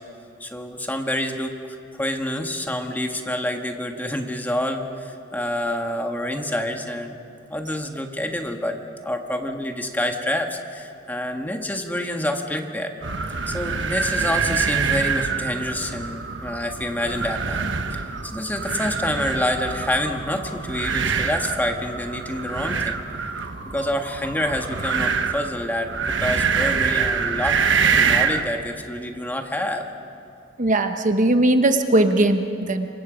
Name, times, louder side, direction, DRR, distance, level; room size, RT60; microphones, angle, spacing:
voice 1, 0.4-1.5 1.9-7.2 7.5-8.8 9.0-12.9 13.5-17.6 17.9-23.0 23.6-29.9, left 1 dB, 10° left, 4 dB, 1.5 m, -27 dB
sound 1, 13.0-28.5, right 5 dB, 80° right, 1.2 m, -25 dB
voice 2, 30.6-32.9, right 1 dB, 45° right, 7 dB, 1.0 m, -19 dB
27.5 x 24.0 x 5.1 m, 2.7 s
head